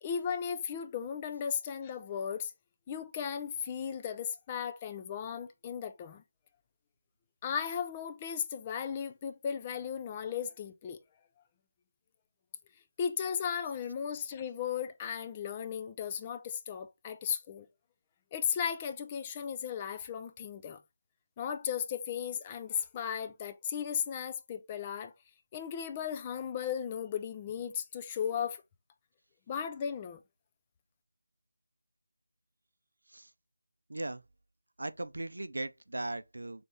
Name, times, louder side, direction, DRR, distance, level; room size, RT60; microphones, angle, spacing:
voice 1, 0.0-2.5 2.9-6.2 7.4-11.0 13.0-17.7 18.3-20.8 21.4-25.1 25.5-28.6 29.5-30.2, left 8 dB, 15° left, 0.3 m, -36 dB
voice 2, 33.9-34.2 34.8-36.6, right 2 dB, 80° right, 0.5 m, -38 dB
3.4 x 3.2 x 4.1 m
figure-of-eight pair, 170°, 0 cm